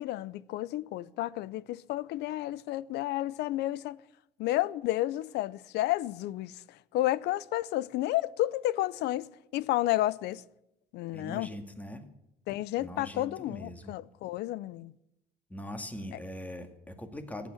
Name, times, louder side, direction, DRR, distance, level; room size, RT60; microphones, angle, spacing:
voice 1, 0.0-4.0 4.4-9.3 9.5-10.4 10.9-11.5 12.5-14.9 16.1-16.2, left 15 dB, 80° left, 0.6 m, -31 dB
voice 2, 11.1-12.0 12.8-13.9 15.5-17.5, equal, 10° left, 2.0 m, -41 dB
14.5 x 9.3 x 9.7 m
cardioid pair, 110°, 17 cm